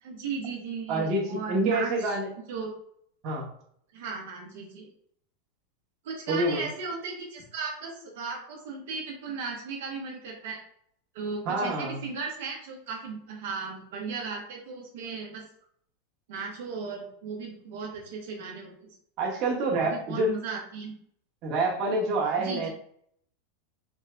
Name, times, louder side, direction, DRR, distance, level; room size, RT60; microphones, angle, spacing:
voice 1, 0.0-2.2 2.5-2.7 3.9-4.9 6.0-10.6 11.1-15.4 16.3-18.9 19.9-20.9 22.4-22.7, right 5 dB, 70° right, 0 dB, 0.9 m, -36 dB
voice 2, 0.9-2.3 3.2-3.5 6.3-6.7 11.4-12.0 19.2-20.3 21.4-22.7, right 2 dB, 40° right, -2 dB, 1.1 m, -27 dB
3.6 x 2.7 x 3.3 m, 0.65 s
supercardioid pair, 155°, 0 cm